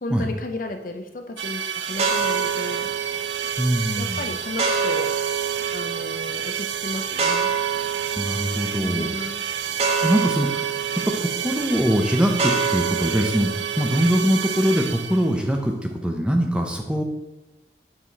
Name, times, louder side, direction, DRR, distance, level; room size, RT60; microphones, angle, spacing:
voice 1, 0.0-2.9 4.0-5.1 5.5-7.5 8.7-9.5, left 2 dB, 50° left, 6 dB, 0.5 m, -34 dB
sound 1, 1.4-15.5, right 8 dB, 85° right, 0.4 m, -30 dB
sound 2, 1.9-14.8, right 6 dB, 35° right, 0.7 m, -28 dB
voice 2, 3.6-4.2 8.2-9.1 10.0-10.7 11.0-17.0, equal, 5° right, 3 dB, 0.5 m, -22 dB
5.8 x 4.8 x 4.0 m, 0.98 s
head